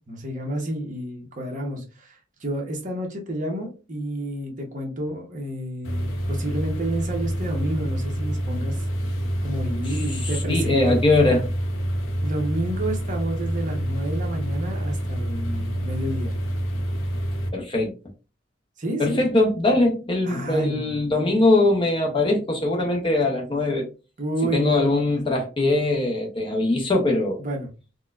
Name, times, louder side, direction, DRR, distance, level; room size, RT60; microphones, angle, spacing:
voice 1, 0.1-8.9 9.4-11.1 12.2-16.4 18.8-19.2 20.3-20.9 24.2-25.2 27.4-27.7, right 1 dB, 40° right, 0.9 m, -30 dB
sound 1, 5.8-17.5, equal, 90° left, 0.6 m, -27 dB
voice 2, 9.9-11.5 17.5-17.9 19.0-23.9 24.5-27.4, left 2 dB, 25° left, 0.5 m, -21 dB
4.0 x 2.1 x 2.3 m
head